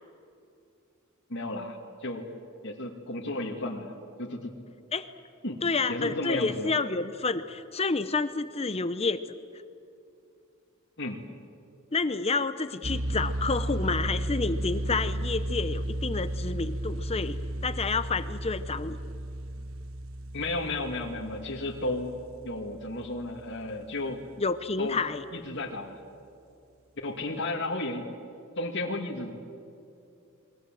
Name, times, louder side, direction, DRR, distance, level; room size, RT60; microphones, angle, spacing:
voice 1, 1.3-2.3 2.6-3.9 4.2-4.5 5.4-5.6 5.9-6.7 11.0-11.2 20.3-22.1 22.4-24.2 24.8-25.0 25.3-26.0 27.0-28.1 28.6-29.3, left 2 dB, 60° left, 0 dB, 2.4 m, -33 dB
voice 2, 5.6-9.2 11.9-19.0 24.4-25.2, left 4 dB, 30° left, 12 dB, 0.7 m, -29 dB
sound 1, 12.8-23.7, right 1 dB, 75° right, 1.3 m, -34 dB
29.0 x 22.5 x 7.7 m, 2.6 s
head